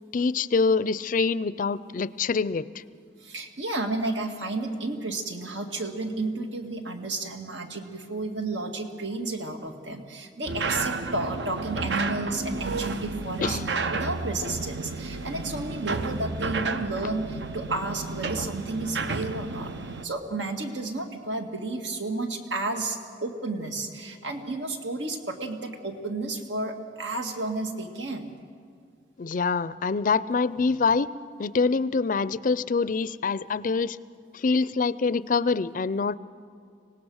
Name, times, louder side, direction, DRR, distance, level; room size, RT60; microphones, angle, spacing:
voice 1, 0.1-2.8 13.4-13.6 29.2-31.1 31.4-34.0 34.3-36.2, left 4 dB, 45° left, 17 dB, 0.4 m, -25 dB
voice 2, 3.2-13.6 13.9-19.7 20.0-28.3, right 2 dB, 85° right, 4 dB, 2.0 m, -32 dB
sound 1, 10.5-20.1, right 3 dB, 70° right, 0.8 m, -31 dB
25.0 x 18.0 x 6.4 m, 2.2 s
head